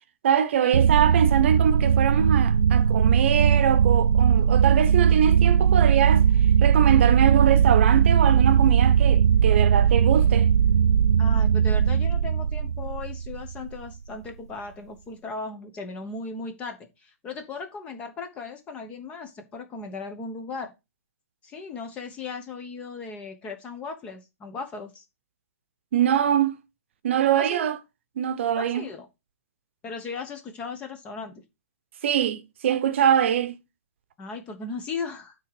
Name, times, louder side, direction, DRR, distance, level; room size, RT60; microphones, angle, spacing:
voice 1, 0.2-6.2 6.6-10.5 25.9-26.6 27.0-27.8 28.2-28.8 32.0-33.6, right 9 dB, 50° right, 0.9 m, -23 dB
sound 1, 0.7-13.6, right 8 dB, 80° right, 0.4 m, -19 dB
voice 2, 11.2-20.7 21.4-25.0 27.3-27.7 28.6-29.1 29.8-31.4 34.2-35.4, left 4 dB, 15° left, 1.0 m, -37 dB
9.2 x 3.8 x 4.9 m
hypercardioid pair, 160°, 8 cm